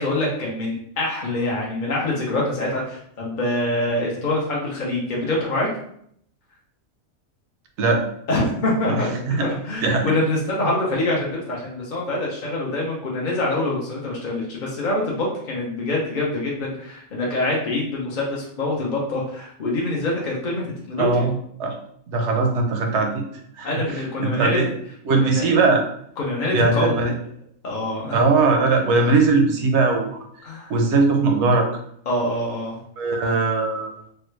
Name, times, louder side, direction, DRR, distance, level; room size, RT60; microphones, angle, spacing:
voice 1, 0.0-5.7 8.3-21.3 23.6-24.6 25.1-25.5 26.2-27.1 27.6-28.2 30.4-30.7 32.1-32.8 33.2-33.4, left 2 dB, 50° left, -3 dB, 0.6 m, -25 dB
voice 2, 21.0-21.7 22.1-23.2 23.6-23.7 24.2-24.7 25.1-25.8 26.5-27.1 28.1-30.1 30.7-31.7 33.0-33.9, right 3 dB, 65° right, 3 dB, 0.8 m, -20 dB
3.2 x 2.2 x 3.1 m, 0.68 s
omnidirectional pair, 1.4 m